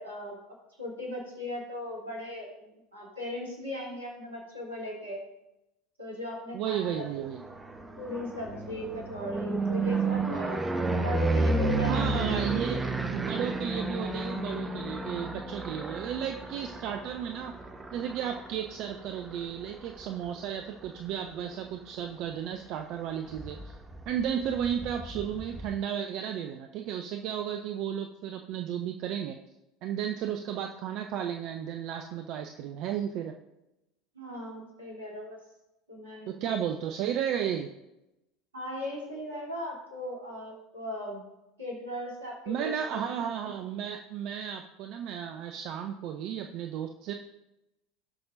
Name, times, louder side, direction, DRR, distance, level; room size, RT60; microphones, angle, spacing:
voice 1, 0.0-5.2 6.0-7.0 8.0-10.6 11.0-12.4 34.1-35.4 35.9-36.6 38.5-41.2 41.6-43.0, left 1 dB, 80° right, -3 dB, 2.9 m, -38 dB
voice 2, 6.5-7.4 11.8-12.8 13.1-17.5 17.9-23.7 24.1-29.4 29.8-33.3 36.3-37.7 42.5-47.1, right 9 dB, 50° right, 5 dB, 0.6 m, -33 dB
sound 1, 7.1-21.1 21.5-22.0 22.3-22.4 22.7-22.8 22.9-25.7, right 2 dB, 15° right, 1.1 m, -32 dB
18.0 x 6.0 x 2.6 m, 0.92 s
figure-of-eight pair, 70°, 0 cm